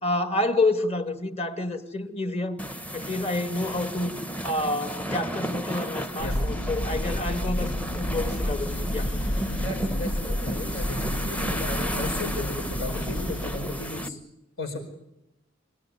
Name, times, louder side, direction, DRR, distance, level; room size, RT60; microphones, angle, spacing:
voice 1, 0.0-2.6 2.9-4.1 4.4-9.1, left 2 dB, 30° left, 2.0 m, -28 dB
sound 1, 2.6-14.1, right 1 dB, 5° left, 0.9 m, -33 dB
Thunder, 6.2-14.1, left 1 dB, 65° left, 1.1 m, -31 dB
voice 2, 9.5-14.2 14.6-14.8, left 2 dB, 85° left, 5.1 m, -35 dB
26.0 x 17.5 x 9.7 m
head